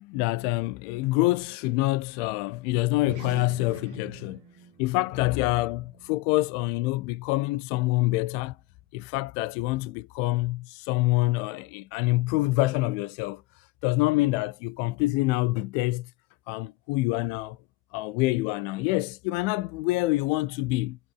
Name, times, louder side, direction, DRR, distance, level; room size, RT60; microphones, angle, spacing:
voice 1, 0.0-4.4 4.8-8.6 8.9-16.1 16.5-17.6 17.9-21.0, left 20 dB, 80° left, 3.0 m, -26 dB
sound 1, 2.9-7.7, right 5 dB, 50° right, 7.3 m, -46 dB
omnidirectional pair, 5.9 m